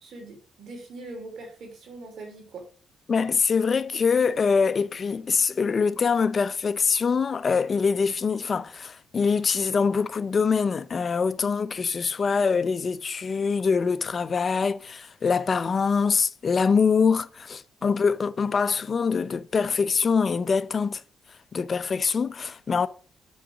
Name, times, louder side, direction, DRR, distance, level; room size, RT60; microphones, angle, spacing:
voice 1, 0.0-2.6 11.4-11.5, right 2 dB, 65° right, 3.1 m, -42 dB
voice 2, 3.1-21.0 21.5-22.9, left 5 dB, 40° left, 0.6 m, -24 dB
6.9 x 6.4 x 6.2 m
cardioid pair, 90°, 0 cm